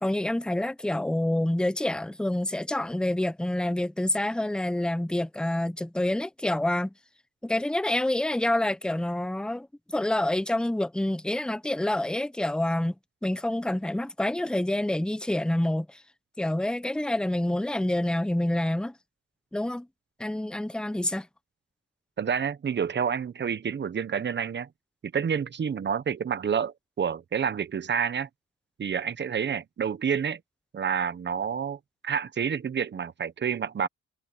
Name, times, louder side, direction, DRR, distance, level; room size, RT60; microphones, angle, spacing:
voice 1, 0.0-6.9 7.4-12.9 13.2-16.0 16.4-18.9 19.5-19.9 20.2-21.3, left 1 dB, 5° left, 0.9 m, -27 dB
voice 2, 22.2-24.7 25.1-28.3 28.8-30.4 30.7-33.9, right 7 dB, 35° right, 1.1 m, -29 dB
cardioid pair, 90°, 30 cm